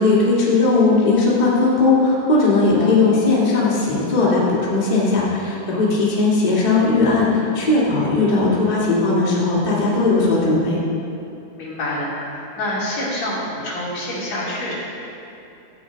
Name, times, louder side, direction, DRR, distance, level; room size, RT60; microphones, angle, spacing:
voice 1, 0.0-10.8, left 3 dB, 80° left, -7 dB, 0.4 m, -18 dB
voice 2, 2.8-3.2 8.2-8.3 11.6-14.7, left 1 dB, 45° left, -8 dB, 3.4 m, -27 dB
14.0 x 9.0 x 3.9 m, 2.8 s
omnidirectional pair, 4.9 m